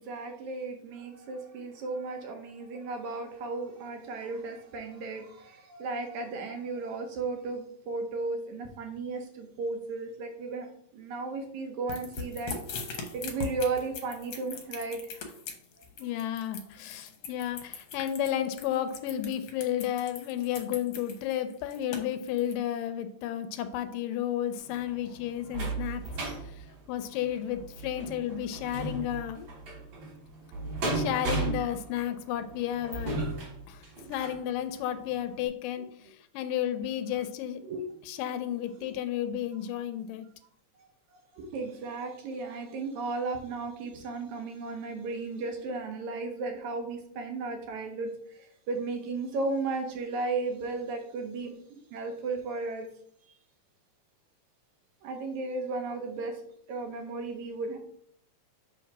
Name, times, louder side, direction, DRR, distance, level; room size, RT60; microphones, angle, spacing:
voice 1, 0.0-10.7 10.9-15.1 37.6-37.9 38.8-38.9 40.8-40.9 41.3-52.9 55.0-56.4 56.7-57.8, right 3 dB, 70° right, 3 dB, 2.1 m, -35 dB
sound 1, 11.9-22.5, left 5 dB, 65° left, 1.6 m, -40 dB
voice 2, 16.0-26.1 26.4-29.5 30.9-33.2 33.7-37.6 38.1-40.3, left 11 dB, 80° left, 10 dB, 2.2 m, -32 dB
sound 2, 24.6-34.4 35.0-35.1 35.5-35.6, right 2 dB, 50° right, 4.2 m, -35 dB
7.4 x 3.2 x 5.9 m, 0.67 s
omnidirectional pair, 3.9 m